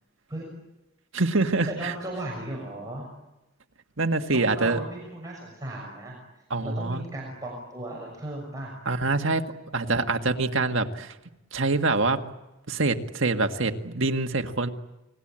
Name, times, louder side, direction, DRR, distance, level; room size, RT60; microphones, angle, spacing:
voice 1, 1.1-1.9 4.0-4.8 6.5-7.1 8.9-9.4 9.7-11.1 11.5-12.2 12.7-14.7, right 3 dB, 65° right, 5 dB, 1.8 m, -25 dB
voice 2, 1.7-3.1 4.3-8.7 9.8-10.0, right 1 dB, 15° right, -2 dB, 6.3 m, -37 dB
29.5 x 21.0 x 8.9 m, 0.98 s
head